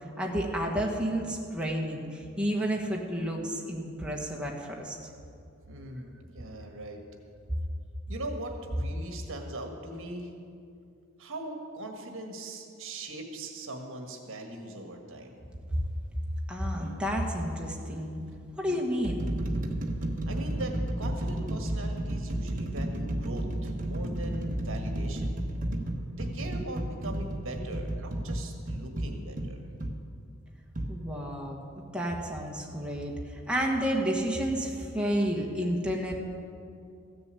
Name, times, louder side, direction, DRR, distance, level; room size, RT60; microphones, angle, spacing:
voice 1, 0.2-4.9 16.5-18.2 18.6-19.2 30.9-31.6 31.9-36.1, equal, 5° right, -2 dB, 1.4 m, -31 dB
voice 2, 5.7-7.0 8.1-10.3 11.2-15.4 20.3-25.3 26.1-29.6, right 1 dB, 65° right, 3 dB, 1.5 m, -40 dB
sound 1, 16.7-17.0 17.9-18.0 18.7-30.0 30.8-30.9, right 1 dB, 40° right, 1.0 m, -32 dB
14.5 x 6.9 x 8.3 m, 2.4 s
head